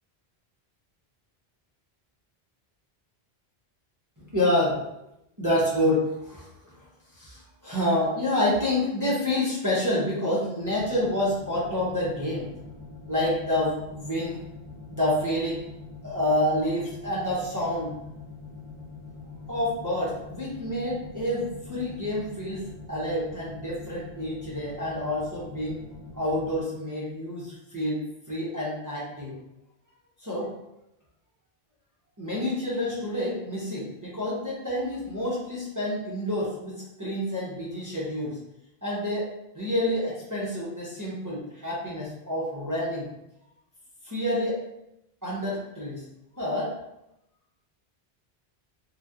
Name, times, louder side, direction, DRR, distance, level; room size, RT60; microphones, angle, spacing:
voice 1, 4.2-4.9 5.4-6.5 7.1-12.5 13.1-14.4 14.9-15.6 16.0-17.9 19.5-25.8 26.1-28.0 28.3-29.3 30.2-30.5 32.2-38.4 38.8-39.3 39.5-43.1 44.0-44.6 45.2-46.0 46.4-46.7, left 1 dB, 20° right, -7 dB, 0.6 m, -28 dB
sound 1, 10.6-26.6, left 3 dB, 60° right, 1.1 m, -44 dB
3.1 x 2.6 x 2.4 m, 0.86 s
omnidirectional pair, 1.1 m